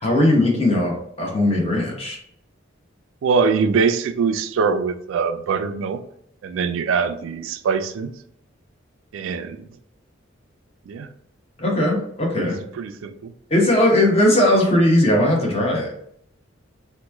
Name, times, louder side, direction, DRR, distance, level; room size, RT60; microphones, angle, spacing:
voice 1, 0.0-2.2 11.6-12.6 13.5-15.9, left 1 dB, 30° left, -1 dB, 0.8 m, -18 dB
voice 2, 3.2-6.0 6.4-8.1 9.1-9.6 10.9-11.1 12.4-12.5 12.7-13.3, right 5 dB, 75° right, 9 dB, 0.3 m, -23 dB
3.0 x 2.2 x 3.4 m, 0.69 s
head